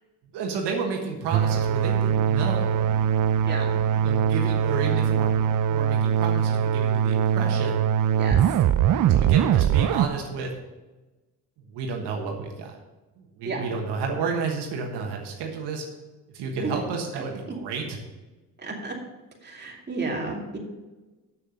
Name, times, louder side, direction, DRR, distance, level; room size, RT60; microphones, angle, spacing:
voice 1, 0.3-2.8 4.0-5.3 5.7-7.8 9.1-10.5 11.7-12.7 13.2-15.8 16.3-18.0, right 5 dB, 80° right, 1 dB, 1.4 m, -31 dB
sound 1, 1.3-10.1, right 9 dB, 55° right, 0.5 m, -22 dB
voice 2, 18.6-19.0 19.4-20.6, right 3 dB, 25° right, -1 dB, 2.6 m, -32 dB
7.7 x 6.7 x 6.5 m, 1.2 s
cardioid pair, 85°, 40 cm